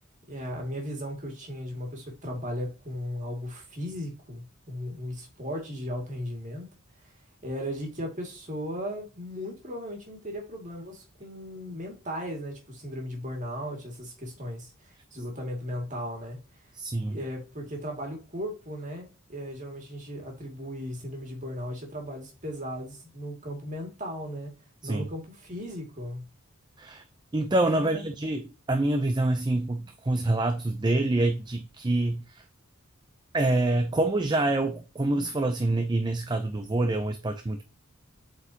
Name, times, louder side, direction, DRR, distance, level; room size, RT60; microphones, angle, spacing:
voice 1, 0.3-6.7 7.0-7.1 7.4-16.7 17.1-24.5 24.8-26.2 27.8-28.1, equal, 40° right, 2.3 m, -36 dB
voice 2, 16.7-17.2 24.8-25.1 26.8-27.0 27.3-32.4 33.3-37.6, right 2 dB, 20° right, 0.5 m, -26 dB
8.0 x 4.6 x 2.8 m
head